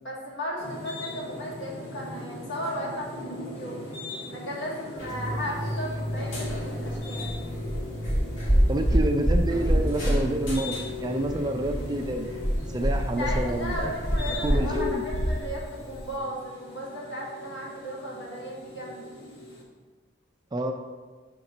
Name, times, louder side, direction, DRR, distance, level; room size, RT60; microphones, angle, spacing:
voice 1, 0.0-3.8 4.3-7.3 13.2-19.0, equal, 70° left, -3 dB, 1.7 m, -35 dB
sound 1, 0.6-19.6, left 2 dB, 90° left, 1.8 m, -38 dB
sound 2, 5.0-16.2, equal, 20° left, 0.6 m, -28 dB
voice 2, 8.7-12.3 12.7-13.9 14.4-15.0 20.5-20.7, right 1 dB, 20° right, 4 dB, 0.4 m, -28 dB
5.2 x 3.9 x 5.9 m, 1.4 s
head